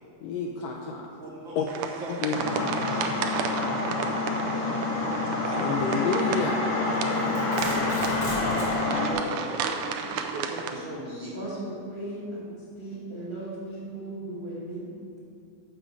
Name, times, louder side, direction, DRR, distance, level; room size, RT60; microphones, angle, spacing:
voice 1, 0.2-1.1 1.5-1.7 2.2-2.7 5.6-6.6, left 5 dB, 90° left, 0 dB, 1.5 m, -29 dB
voice 2, 1.2-2.6 2.9-3.1 5.4-6.1 8.3-11.4, right 2 dB, 70° right, -4 dB, 1.1 m, -37 dB
sound 1, 1.7-10.7, right 6 dB, 85° right, 2.1 m, -34 dB
sound 2, 2.3-9.1, left 3 dB, 65° left, 1.2 m, -28 dB
voice 3, 2.4-3.5 11.3-14.9, right 1 dB, 40° right, -9 dB, 0.9 m, -38 dB
Domestic sounds home sounds, 6.9-8.8, left 1 dB, 35° left, 2.6 m, -38 dB
7.4 x 7.0 x 5.2 m, 2.4 s
omnidirectional pair, 3.6 m